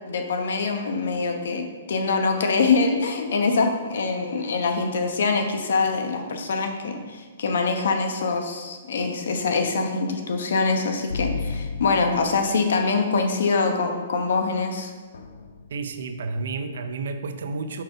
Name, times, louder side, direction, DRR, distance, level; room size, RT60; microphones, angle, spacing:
voice 1, 0.0-14.9, left 4 dB, 75° left, 4 dB, 1.0 m, -24 dB
sound 1, 11.1-12.9 15.1-16.1, left 4 dB, 90° left, 0.6 m, -33 dB
voice 2, 15.7-17.8, right 3 dB, 70° right, 9 dB, 0.6 m, -31 dB
5.8 x 5.5 x 3.9 m, 1.4 s
hypercardioid pair, 160°, 0 cm